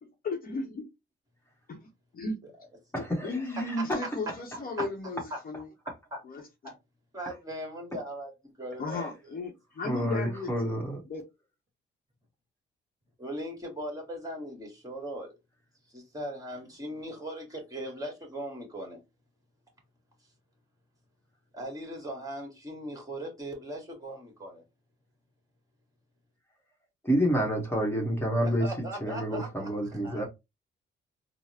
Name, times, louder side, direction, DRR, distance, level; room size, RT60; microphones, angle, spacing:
voice 1, 0.0-0.9 1.7-1.8 2.1-2.4 3.0-5.7 6.2-6.7 8.8-10.7 11.1-11.2, left 2 dB, 45° left, 0.8 m, -35 dB
voice 2, 2.9-3.3 3.7-4.0 8.9-9.0 9.8-11.0 27.0-30.3, equal, 10° left, 1.1 m, -29 dB
voice 3, 7.1-8.3 8.6-9.1 13.2-15.3 15.9-19.0 21.5-24.6 28.4-29.7 30.0-30.3, right 1 dB, 15° right, 1.6 m, -39 dB
3.8 x 2.0 x 2.8 m
cardioid pair, 90°, 20 cm